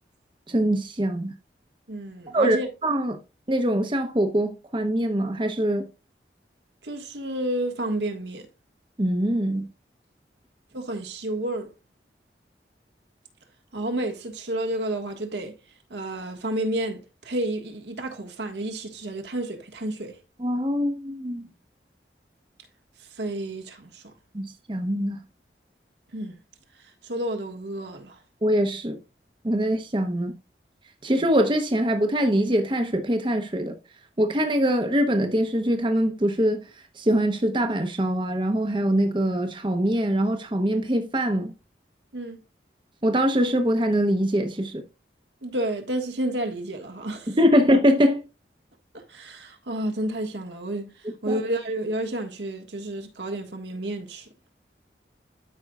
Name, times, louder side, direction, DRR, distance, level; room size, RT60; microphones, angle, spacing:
voice 1, 0.5-1.3 2.3-2.6 2.8-3.2 3.5-5.9 9.0-9.7 20.4-21.5 24.3-25.2 28.4-29.0 29.4-30.3 31.0-33.7 34.2-36.6 37.0-41.5 43.0-44.8 47.3-48.2 51.3-51.4, equal, 25° right, 0.8 m, -23 dB
voice 2, 1.9-2.7 6.8-8.5 10.7-11.7 13.7-15.5 15.9-20.2 23.2-24.0 26.1-26.4 27.0-28.2 42.1-42.4 45.4-47.4 48.9-50.9 51.2-54.3, right 1 dB, 85° right, 1.5 m, -30 dB
12.5 x 5.2 x 2.4 m
head